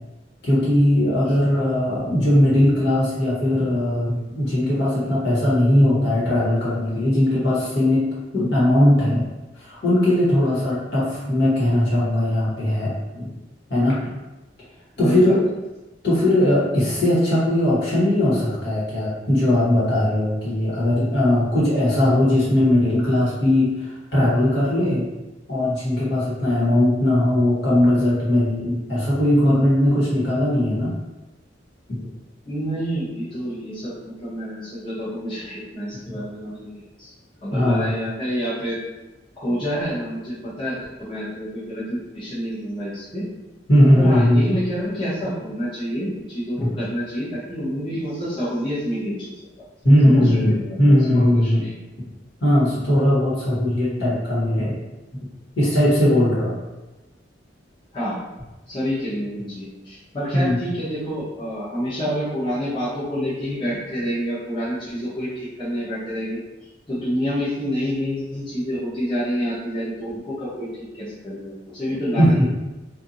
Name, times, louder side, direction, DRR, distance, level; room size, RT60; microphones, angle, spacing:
voice 1, 0.4-8.1 8.3-9.2 9.6-13.3 13.7-14.1 15.0-15.4 16.0-25.0 25.5-30.9 31.9-32.1 37.5-37.9 43.7-44.4 46.6-46.7 49.8-51.6 52.4-54.8 55.5-56.6 60.3-60.6 72.2-72.4, left 1 dB, 65° left, -8 dB, 1.4 m, -19 dB
voice 2, 15.0-15.4 32.4-37.1 37.4-38.8 39.4-43.2 43.9-49.4 50.0-50.8 51.1-51.7 57.9-58.2 58.7-66.4 66.9-72.4, equal, 30° left, -11 dB, 0.9 m, -28 dB
2.7 x 2.6 x 2.6 m, 1.0 s
head